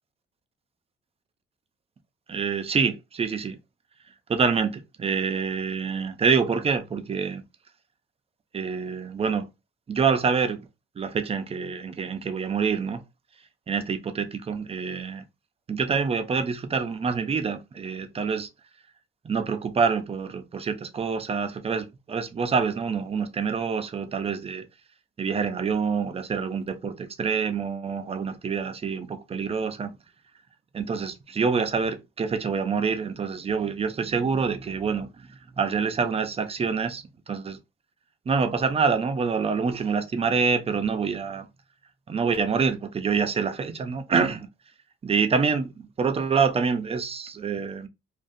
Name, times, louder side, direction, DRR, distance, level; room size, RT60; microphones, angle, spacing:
voice 1, 2.3-3.6 4.3-7.4 8.5-9.4 9.9-10.6 11.0-13.0 13.7-15.2 15.7-18.5 19.2-24.7 25.2-29.9 30.7-35.1 35.6-37.6 38.3-41.5 42.1-44.5 45.0-47.9, right 5 dB, 30° right, 0.5 m, -26 dB
2.5 x 2.4 x 2.6 m
cardioid pair, 90°, 20 cm